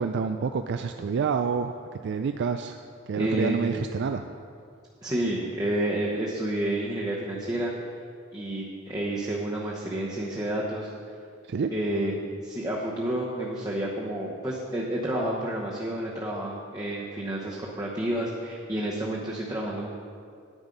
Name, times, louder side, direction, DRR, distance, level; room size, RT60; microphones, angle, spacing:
voice 1, 0.0-1.7 2.0-2.8 3.1-4.2 11.5-11.7, right 5 dB, 55° right, 7 dB, 0.4 m, -28 dB
voice 2, 3.1-3.6 5.0-7.7 8.3-10.9 11.7-12.1 12.4-19.9, right 1 dB, 20° right, -4 dB, 1.0 m, -30 dB
9.9 x 9.0 x 5.2 m, 2.3 s
head